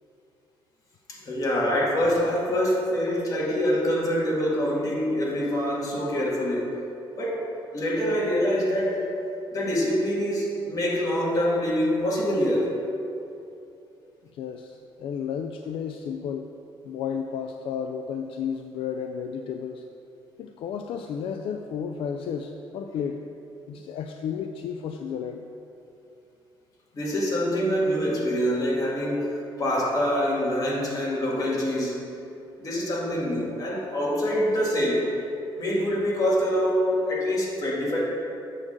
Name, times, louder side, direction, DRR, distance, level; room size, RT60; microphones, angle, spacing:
voice 1, 1.1-6.7 7.2-7.4 7.7-9.0 9.5-12.7 26.9-29.3 29.6-32.0 32.6-35.1 35.6-38.0, equal, 35° left, -4 dB, 1.8 m, -25 dB
voice 2, 14.3-16.5 16.8-19.8 20.4-23.2 23.7-25.4, left 7 dB, 70° left, 5 dB, 0.4 m, -32 dB
7.7 x 3.7 x 6.4 m, 2.7 s
cardioid pair, 120°, 10 cm